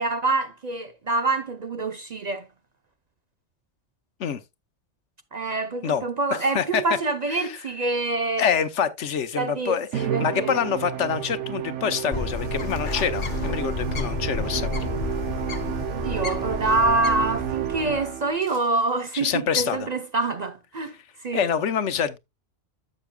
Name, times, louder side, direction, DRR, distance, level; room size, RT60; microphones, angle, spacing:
voice 1, 0.0-2.5 5.3-8.5 9.3-10.6 15.9-20.9 21.2-21.5, right 3 dB, 45° right, 0.6 m, -26 dB
voice 2, 6.3-6.8 7.3-7.6 8.4-14.9 19.1-19.9 21.3-22.2, left 7 dB, 75° left, 1.2 m, -26 dB
Musical instrument, 9.9-18.5, right 12 dB, 75° right, 1.0 m, -31 dB
Bird, 12.1-18.0, left 4 dB, 45° left, 1.1 m, -31 dB
sound 1, 18.4-19.0 19.3-19.4, equal, 25° right, 4.3 m, -53 dB
12.0 x 7.4 x 2.2 m
omnidirectional pair, 1.2 m